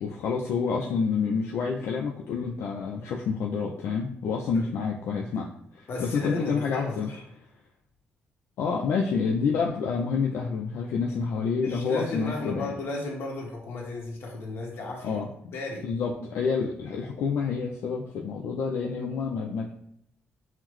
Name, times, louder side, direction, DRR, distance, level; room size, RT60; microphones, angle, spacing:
voice 1, 0.0-5.5 6.0-7.1 8.6-12.7 15.0-15.5 15.8-19.7, left 5 dB, 80° left, -1 dB, 0.4 m, -28 dB
voice 2, 5.9-7.2 11.5-15.2 15.5-15.8, left 2 dB, 60° left, -1 dB, 1.1 m, -34 dB
5.6 x 2.1 x 3.1 m, 0.72 s
cardioid pair, 125°, 4 cm